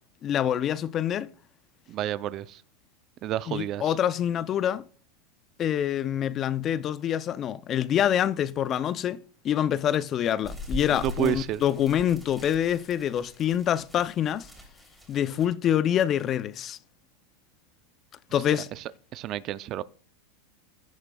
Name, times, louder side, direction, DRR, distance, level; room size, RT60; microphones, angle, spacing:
voice 1, 0.2-1.3 3.5-4.9 5.6-14.5 15.1-16.8 18.3-18.7, left 10 dB, 35° left, 0.5 m, -26 dB
voice 2, 1.9-2.6 3.2-3.9 10.9-11.6 18.8-18.9 19.1-19.8, right 12 dB, 40° right, 0.4 m, -30 dB
sound 1, 10.4-15.5, left 2 dB, ahead, 3.1 m, -41 dB
16.0 x 6.4 x 2.3 m
supercardioid pair, 125°, 0 cm